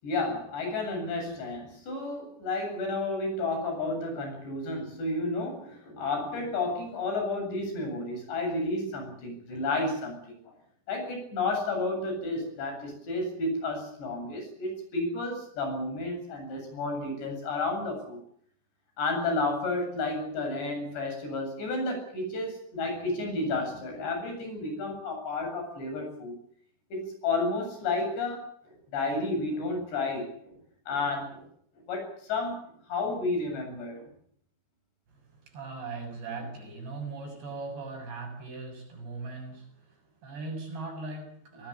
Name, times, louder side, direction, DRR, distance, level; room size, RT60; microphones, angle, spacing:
voice 1, 0.0-10.5 10.9-18.2 19.0-26.3 26.9-30.6 30.9-31.5 31.9-32.6 32.9-34.1, left 2 dB, 85° left, 10.0 m, -31 dB
voice 2, 35.1-41.7, right 3 dB, 75° right, 9.3 m, -39 dB
22.5 x 19.0 x 8.6 m
omnidirectional pair, 4.9 m